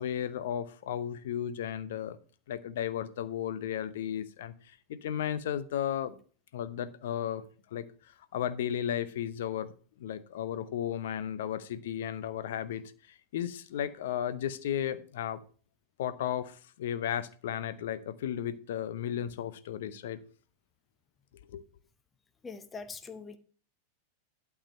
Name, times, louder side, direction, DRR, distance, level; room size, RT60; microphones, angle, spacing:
voice 1, 0.0-2.2 2.5-4.5 4.9-6.2 6.5-7.4 7.7-7.9 8.3-9.7 10.0-12.9 13.3-15.4 16.0-20.2 21.5-21.6, left 10 dB, 55° left, 0.8 m, -34 dB
voice 2, 22.4-23.4, left 4 dB, 15° left, 0.9 m, -42 dB
11.5 x 4.8 x 5.4 m
figure-of-eight pair, 90°, 0 cm